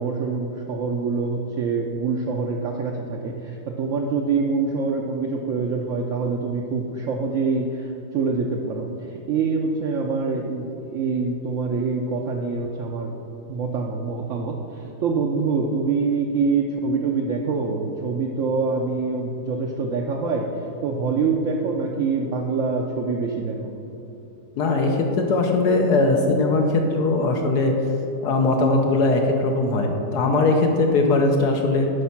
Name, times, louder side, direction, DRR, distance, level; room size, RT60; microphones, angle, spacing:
voice 1, 0.0-13.1 13.5-23.6, right 4 dB, 65° right, 0 dB, 0.8 m, -25 dB
voice 2, 24.6-27.7 28.2-31.9, left 2 dB, 75° left, 2 dB, 1.3 m, -20 dB
8.2 x 5.3 x 5.8 m, 2.9 s
omnidirectional pair, 1.8 m